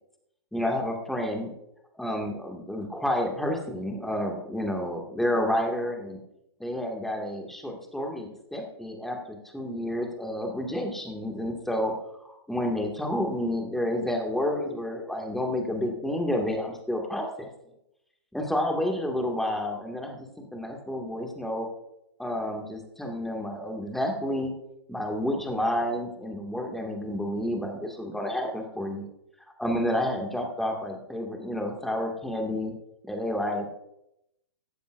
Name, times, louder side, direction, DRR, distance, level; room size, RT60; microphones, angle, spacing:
voice 1, 0.5-1.5 1.9-6.2 6.6-11.9 12.2-17.5 18.3-21.7 22.2-24.5 24.9-29.1 29.6-32.7 33.0-33.7, left 1 dB, ahead, 2 dB, 2.2 m, -30 dB
15.5 x 14.5 x 2.6 m, 0.83 s
figure-of-eight pair, 115°, 14 cm